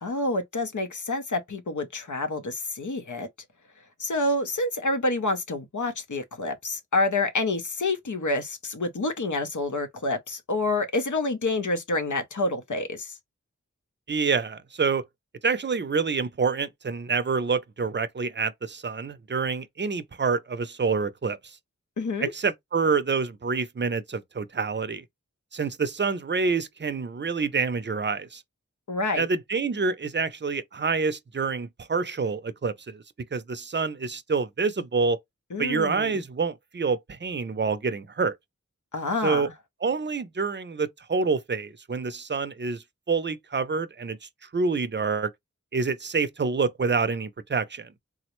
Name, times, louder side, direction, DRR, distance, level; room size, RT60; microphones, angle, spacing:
voice 1, 0.0-3.3 4.0-13.2 22.0-22.3 28.9-29.3 35.5-36.2 38.9-39.5, left 2 dB, 85° left, 0.7 m, -28 dB
voice 2, 14.1-15.0 15.4-21.6 22.2-25.0 25.5-28.4 29.2-33.0 33.3-35.2 35.6-38.4 39.2-39.5 39.8-45.3 45.7-47.9, right 4 dB, 40° right, 0.4 m, -27 dB
3.7 x 2.0 x 2.9 m
wide cardioid pair, 40°, 29 cm